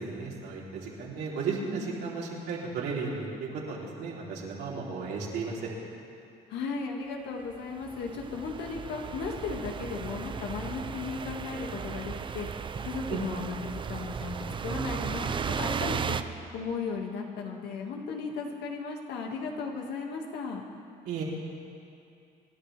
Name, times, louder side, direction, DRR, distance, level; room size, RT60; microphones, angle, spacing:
voice 1, 0.0-5.7 13.1-13.2 21.1-21.2, right 4 dB, 80° right, -4 dB, 3.4 m, -34 dB
voice 2, 6.5-12.5 12.8-14.4 14.6-16.2 16.5-20.6, left 5 dB, 80° left, 1 dB, 2.0 m, -36 dB
sound 1, 7.6-7.7 7.8-16.2, right 6 dB, 30° right, 0.5 m, -35 dB
26.5 x 11.5 x 3.4 m, 2.6 s
cardioid pair, 110°, 17 cm